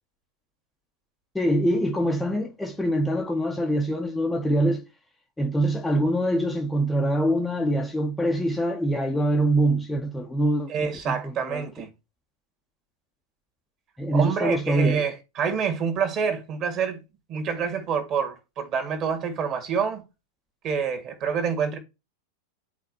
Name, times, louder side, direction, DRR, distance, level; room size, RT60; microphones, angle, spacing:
voice 1, 1.3-4.8 5.4-11.6 14.0-15.0, right 1 dB, 5° left, 0.8 m, -24 dB
voice 2, 10.7-11.9 14.1-17.0 17.3-20.0 20.6-21.8, right 6 dB, 35° right, 1.9 m, -27 dB
10.5 x 4.3 x 2.8 m
figure-of-eight pair, 90°, 0 cm